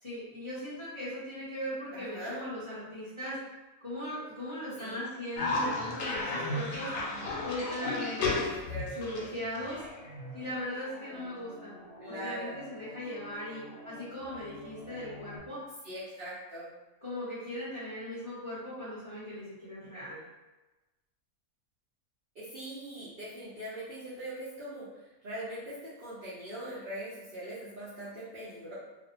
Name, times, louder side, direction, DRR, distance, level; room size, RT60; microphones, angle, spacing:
voice 1, 0.0-3.5 3.8-6.9 7.4-8.4 9.0-9.8 10.3-11.8 12.0-15.6 17.0-20.2, left 1 dB, 25° left, -12 dB, 0.7 m, -38 dB
voice 2, 1.9-2.4 4.8-5.0 8.2-9.3 12.0-12.5 15.8-16.7 22.4-24.9 25.2-28.7, right 1 dB, 55° right, -10 dB, 0.7 m, -41 dB
Cough, 5.4-10.4, left 3 dB, 80° left, 1.0 m, -34 dB
sound 1, 9.7-15.4, left 1 dB, 70° right, 1.0 m, -49 dB
2.5 x 2.0 x 2.8 m, 1.1 s
omnidirectional pair, 1.4 m